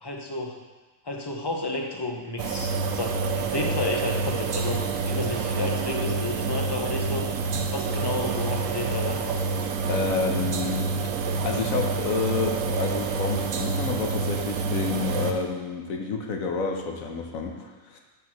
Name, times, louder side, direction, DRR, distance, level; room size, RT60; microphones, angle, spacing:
voice 1, 0.0-0.6 1.0-7.3 7.7-9.5, left 2 dB, 25° left, 1 dB, 0.7 m, -31 dB
sound 1, 2.4-15.3, right 4 dB, 70° right, 1.1 m, -27 dB
voice 2, 9.9-10.9 11.4-18.0, left 4 dB, 75° left, 2 dB, 1.3 m, -29 dB
6.3 x 5.8 x 6.1 m, 1.2 s
omnidirectional pair, 1.5 m